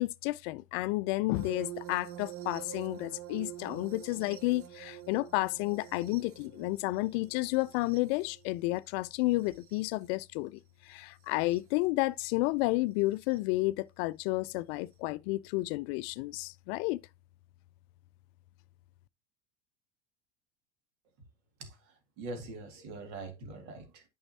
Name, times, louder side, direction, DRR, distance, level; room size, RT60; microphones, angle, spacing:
voice 1, 0.0-17.0, left 20 dB, 55° left, 0.4 m, -31 dB
sound 1, 1.3-10.0 11.3-11.6 13.3-13.4, right 12 dB, 40° right, 0.8 m, -47 dB
voice 2, 21.6-24.0, right 2 dB, 65° right, 2.1 m, -43 dB
8.8 x 5.5 x 2.8 m
hypercardioid pair, 95°, 37 cm